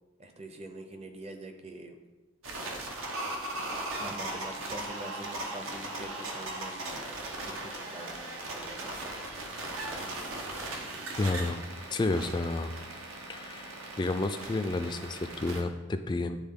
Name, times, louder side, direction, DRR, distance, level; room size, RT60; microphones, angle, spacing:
voice 1, 0.2-2.0 3.6-9.2, right 1 dB, 30° right, 6 dB, 0.6 m, -45 dB
sound 1, 2.4-15.6, right 2 dB, 90° right, 1.0 m, -38 dB
voice 2, 11.2-11.6 11.9-12.7 13.3-13.7 14.0-16.4, left 2 dB, 20° left, 8 dB, 0.3 m, -30 dB
9.7 x 3.6 x 3.7 m, 1.2 s
head